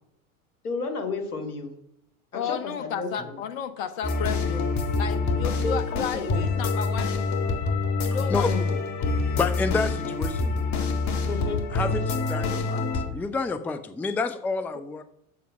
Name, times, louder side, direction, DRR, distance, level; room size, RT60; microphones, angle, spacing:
voice 1, 0.6-1.7 2.3-3.4 5.6-6.4 8.4-8.8 11.3-11.7, left 3 dB, 85° left, 5 dB, 1.8 m, -32 dB
voice 2, 2.3-7.5 8.0-8.8, left 7 dB, 65° left, 9 dB, 1.3 m, -33 dB
sound 1, 4.0-13.1, left 3 dB, 40° left, 1.8 m, -26 dB
voice 3, 8.0-8.5 9.4-10.6 11.7-15.0, left 4 dB, 5° left, 10 dB, 0.4 m, -29 dB
7.5 x 7.0 x 5.8 m, 0.73 s
hypercardioid pair, 90°, 43 cm